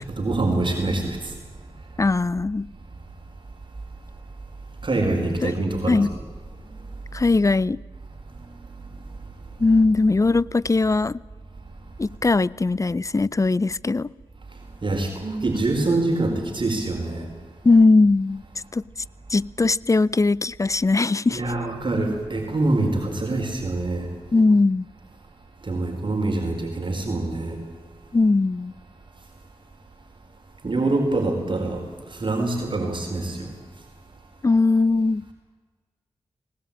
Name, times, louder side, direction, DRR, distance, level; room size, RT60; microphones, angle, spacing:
voice 1, 0.1-1.3 4.8-6.1 14.8-17.3 21.3-24.1 25.6-27.6 30.6-31.9 32.1-33.5, right 2 dB, 50° right, 4.6 m, -25 dB
voice 2, 2.0-2.7 5.4-5.5 5.9-6.2 7.1-7.8 9.6-11.2 12.0-14.1 17.6-18.4 18.7-18.8 19.3-21.4 24.3-24.9 28.1-28.7 34.4-35.2, left 3 dB, 30° left, 0.6 m, -19 dB
20.0 x 19.5 x 8.8 m
cardioid pair, 45°, 11 cm